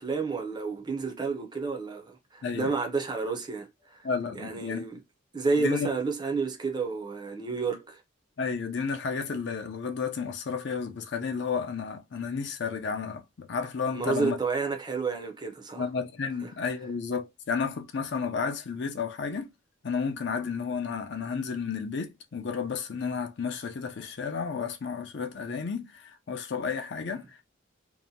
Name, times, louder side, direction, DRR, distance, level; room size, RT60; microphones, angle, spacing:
voice 1, 0.0-4.0 4.4-5.0 5.3-8.0 13.9-15.8 16.4-16.5, right 4 dB, 20° right, 0.4 m, -30 dB
voice 2, 2.4-2.7 4.0-4.9 5.6-5.9 8.4-14.4 15.8-19.5 19.8-27.4, left 5 dB, 55° left, 0.5 m, -32 dB
2.7 x 2.1 x 2.6 m
head